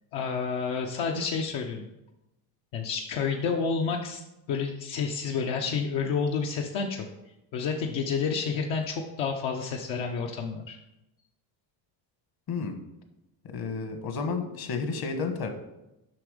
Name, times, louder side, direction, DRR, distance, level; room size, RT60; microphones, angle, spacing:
voice 1, 0.1-1.9 2.7-4.2 4.5-7.1 7.5-10.8, left 5 dB, 70° left, 1 dB, 0.9 m, -29 dB
voice 2, 13.5-15.5, left 4 dB, 50° left, 6 dB, 1.4 m, -31 dB
7.6 x 5.9 x 5.0 m, 0.92 s
cardioid pair, 135°, 46 cm